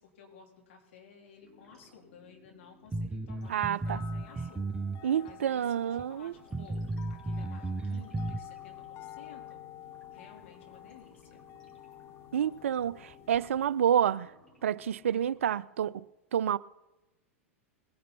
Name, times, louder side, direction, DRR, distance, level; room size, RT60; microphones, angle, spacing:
voice 1, 0.0-3.6 3.9-4.6 5.2-5.8 6.1-9.6 10.1-11.5, left 6 dB, 60° left, 3.9 m, -55 dB
sound 1, 1.4-15.6, left 1 dB, 10° left, 4.9 m, -61 dB
sound 2, 2.9-5.0 5.3-5.4 6.0-6.1 6.5-8.4, right 2 dB, 15° right, 0.5 m, -34 dB
sound 3, 3.4-13.9, left 11 dB, 35° left, 0.9 m, -50 dB
voice 2, 3.5-4.0 5.0-6.3 12.3-14.3 14.6-16.0 16.3-16.6, right 9 dB, 65° right, 0.4 m, -28 dB
21.0 x 10.0 x 4.3 m
figure-of-eight pair, 95°, 7 cm